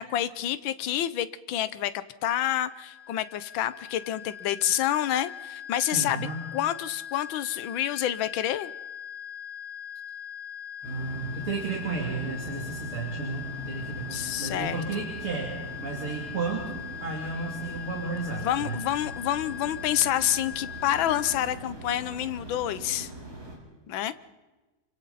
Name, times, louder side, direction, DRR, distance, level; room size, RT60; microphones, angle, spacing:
voice 1, 0.0-1.9 2.2-8.7 14.1-15.0 18.3-23.1 23.9-24.1, left 12 dB, 70° left, 14 dB, 1.6 m, -28 dB
sound 1, 2.3-21.4, left 9 dB, 50° left, 2.6 m, -41 dB
voice 2, 5.8-6.5 10.8-18.8, right 4 dB, 85° right, -2 dB, 3.8 m, -33 dB
sound 2, 10.8-23.6, right 1 dB, 45° right, 5.6 m, -42 dB
28.5 x 25.0 x 4.2 m, 1.1 s
omnidirectional pair, 2.3 m